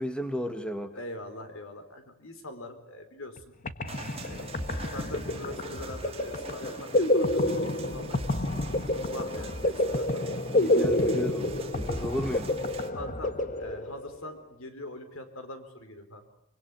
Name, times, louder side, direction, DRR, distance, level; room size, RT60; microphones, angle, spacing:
voice 1, 0.0-0.9 10.5-12.5, left 1 dB, 5° left, 8 dB, 1.8 m, -33 dB
voice 2, 0.9-3.4 4.2-8.2 8.5-10.4 12.9-16.3, left 1 dB, 85° left, 8 dB, 4.5 m, -43 dB
sound 1, 3.4-3.5 3.6-14.3, left 1 dB, 40° left, 1.5 m, -29 dB
sound 2, 3.9-12.9, right 4 dB, 30° right, 2.7 m, -45 dB
24.5 x 24.0 x 9.6 m, 0.82 s
head